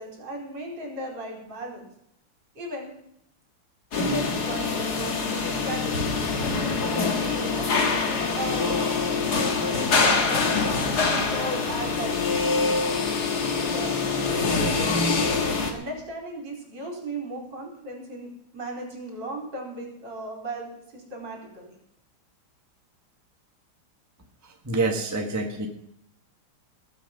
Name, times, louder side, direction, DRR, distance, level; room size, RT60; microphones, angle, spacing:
voice 1, 0.0-1.9 2.6-2.9 3.9-6.2 6.9-13.0 13.5-15.0 15.7-18.3 18.5-21.8, right 1 dB, 55° right, 0 dB, 5.1 m, -37 dB
sound 1, 3.9-15.7, left 4 dB, 50° left, 2.1 m, -25 dB
voice 2, 24.6-25.7, right 3 dB, 10° right, 3 dB, 1.4 m, -26 dB
19.5 x 8.3 x 5.4 m, 0.73 s
omnidirectional pair, 2.4 m